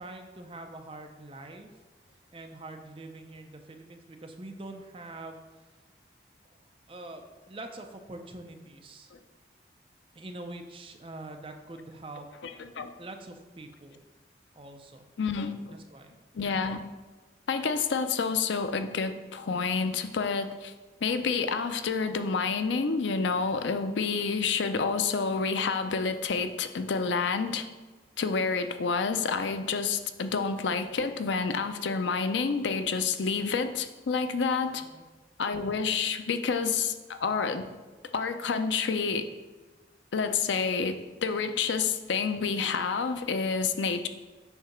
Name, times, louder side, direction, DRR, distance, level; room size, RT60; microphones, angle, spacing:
voice 1, 0.0-1.7 2.3-5.4 6.9-9.1 10.1-12.3 13.0-14.0 14.6-15.1 15.7-16.1 34.8-35.1, right 2 dB, 30° right, 4 dB, 0.6 m, -44 dB
voice 2, 12.4-12.9 15.2-15.8 16.3-16.8 17.5-20.7 21.0-27.7 28.2-34.8 35.4-37.7 38.1-39.3 40.1-44.1, left 5 dB, 85° left, 9 dB, 0.5 m, -29 dB
7.9 x 2.8 x 5.9 m, 1.3 s
head